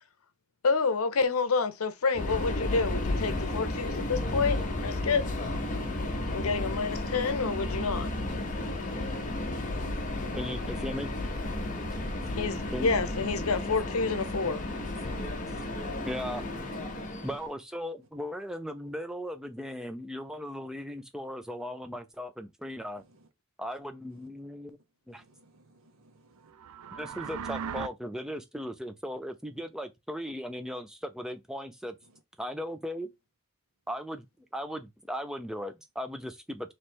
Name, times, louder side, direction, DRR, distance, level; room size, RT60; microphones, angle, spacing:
voice 1, 0.6-5.2 6.3-8.1 12.4-14.6, left 4 dB, 75° left, 0.7 m, -28 dB
Subway metro underground, 2.1-17.5, left 1 dB, 35° left, 0.7 m, -33 dB
voice 2, 10.3-11.1 12.7-12.9 15.1-15.2 16.1-16.4 17.2-23.0 23.6-24.8 25.1-25.2 27.0-32.0 32.4-33.1 33.9-34.3 34.5-36.7, equal, 5° right, 0.4 m, -37 dB
voice 3, 25.2-26.5, right 2 dB, 65° right, 0.8 m, -61 dB
sound 1, 26.5-27.9, right 7 dB, 80° right, 0.4 m, -37 dB
3.2 x 3.1 x 4.3 m
head